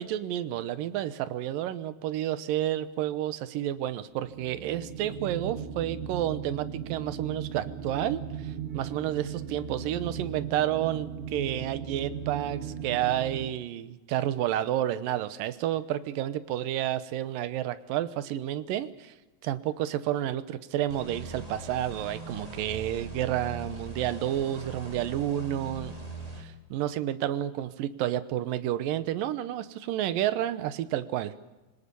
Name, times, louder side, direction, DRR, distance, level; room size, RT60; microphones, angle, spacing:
voice 1, 0.0-19.1 19.4-25.9 26.4-31.3, right 12 dB, 80° right, 13 dB, 2.6 m, -30 dB
sound 1, 4.1-13.4, right 7 dB, 65° right, 3.3 m, -37 dB
sound 2, 20.9-26.4, right 2 dB, 10° right, 3.0 m, -41 dB
26.0 x 18.5 x 6.9 m, 1.1 s
omnidirectional pair, 4.0 m